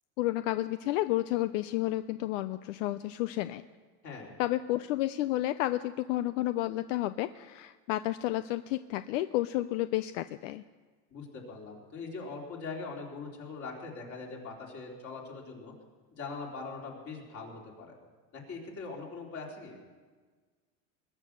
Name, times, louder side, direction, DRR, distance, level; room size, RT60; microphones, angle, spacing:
voice 1, 0.2-3.6 4.4-10.6, left 15 dB, 80° left, 13 dB, 0.6 m, -31 dB
voice 2, 4.0-4.4 11.1-15.7 16.1-17.9 18.3-19.8, left 4 dB, 35° left, -1 dB, 3.7 m, -42 dB
20.5 x 9.6 x 6.7 m, 1.5 s
supercardioid pair, 145°, 37 cm